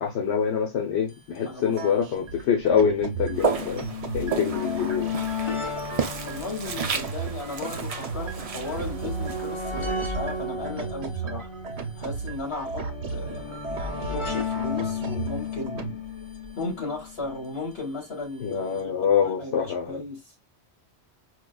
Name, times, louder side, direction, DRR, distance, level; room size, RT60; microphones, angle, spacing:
voice 1, 0.0-3.8 4.1-5.1 18.4-20.0, left 7 dB, 80° left, 1.1 m, -25 dB
sound 1, 1.1-1.2 1.4-1.5 2.3-17.6 18.5-18.6 18.8-18.9, left 4 dB, 30° left, 0.8 m, -34 dB
voice 2, 1.5-1.9 6.2-11.5 12.0-16.0 16.6-18.9 19.2-20.2, left 3 dB, 65° left, 2.2 m, -36 dB
sound 2, 1.7-15.9, right 4 dB, 75° right, 0.9 m, -36 dB
Walk footsteps, 3.3-10.5, right 5 dB, 50° right, 0.4 m, -33 dB
4.7 x 2.2 x 2.2 m
omnidirectional pair, 1.1 m